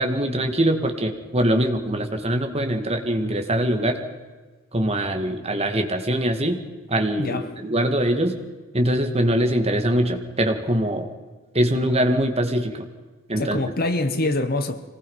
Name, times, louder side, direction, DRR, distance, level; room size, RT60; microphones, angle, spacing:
voice 1, 0.0-4.0 4.7-6.6 6.9-8.3 8.7-11.1 11.5-12.8 13.3-13.6, right 1 dB, 30° right, 5 dB, 2.2 m, -22 dB
voice 2, 7.2-7.5 13.4-14.8, left 2 dB, 45° left, 9 dB, 1.4 m, -24 dB
25.5 x 19.5 x 5.7 m, 1.3 s
head